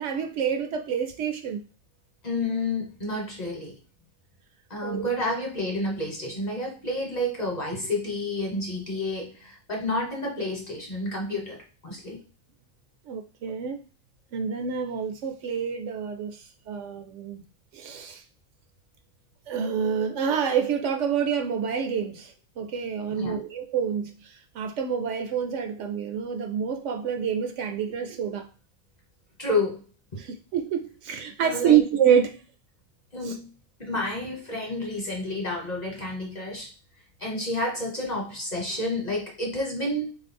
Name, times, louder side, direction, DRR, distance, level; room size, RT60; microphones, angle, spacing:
voice 1, 0.0-1.6 4.8-5.1 13.1-13.8 14.3-17.4 17.7-18.2 19.5-28.5 30.2-32.4 33.2-33.4, right 8 dB, 70° right, 5 dB, 0.8 m, -27 dB
voice 2, 2.2-3.8 4.7-12.2 23.1-23.4 29.4-29.8 30.1-30.2 31.4-31.8 33.1-33.5 33.8-36.7 37.2-40.1, left 1 dB, 35° left, 0 dB, 1.1 m, -30 dB
3.7 x 2.5 x 4.2 m, 0.37 s
omnidirectional pair, 1.4 m